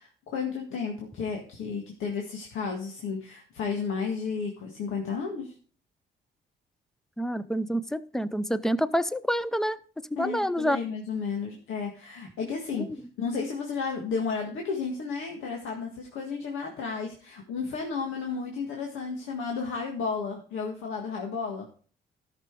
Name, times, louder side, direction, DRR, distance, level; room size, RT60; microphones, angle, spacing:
voice 1, 0.0-5.5 10.2-21.7, left 5 dB, 85° left, 1 dB, 1.8 m, -33 dB
voice 2, 7.2-9.8 10.1-10.8 12.8-12.9, equal, ahead, 15 dB, 0.6 m, -27 dB
13.0 x 6.1 x 4.7 m, 0.43 s
cardioid pair, 90°, 20 cm